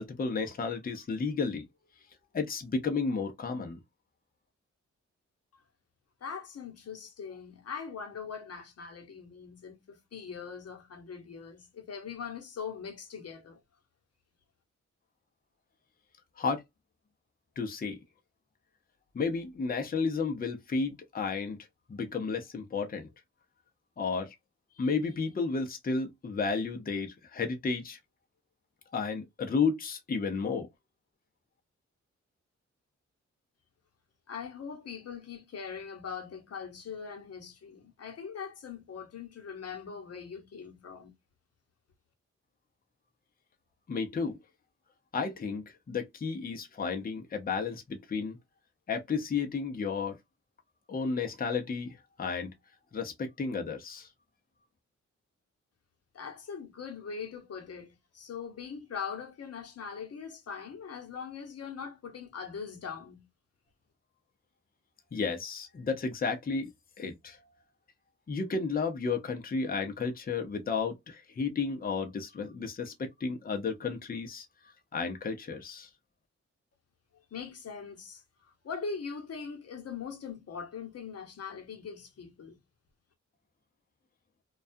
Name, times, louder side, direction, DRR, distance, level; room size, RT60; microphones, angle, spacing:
voice 1, 0.0-1.7 2.3-3.8 16.4-16.6 17.6-18.0 19.1-21.6 21.9-23.1 24.0-24.3 24.8-28.0 28.9-30.7 43.9-44.4 45.1-48.4 48.9-50.2 50.9-52.5 52.9-54.1 65.1-67.5 68.3-74.5 74.9-75.9, left 4 dB, 30° left, 0.6 m, -32 dB
voice 2, 6.2-13.6 34.3-41.1 56.1-63.3 77.1-82.6, left 6 dB, 55° left, 0.9 m, -41 dB
2.3 x 2.3 x 2.5 m
cardioid pair, 65°, 29 cm